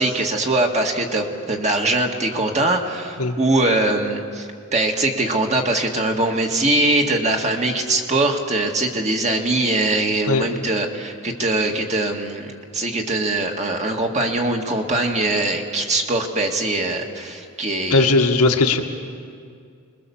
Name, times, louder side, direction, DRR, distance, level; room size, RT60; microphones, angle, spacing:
voice 1, 0.0-18.1, right 2 dB, 30° right, 2 dB, 2.0 m, -22 dB
voice 2, 17.9-18.8, left 3 dB, 90° left, 2 dB, 1.8 m, -17 dB
26.0 x 21.5 x 7.1 m, 2.3 s
head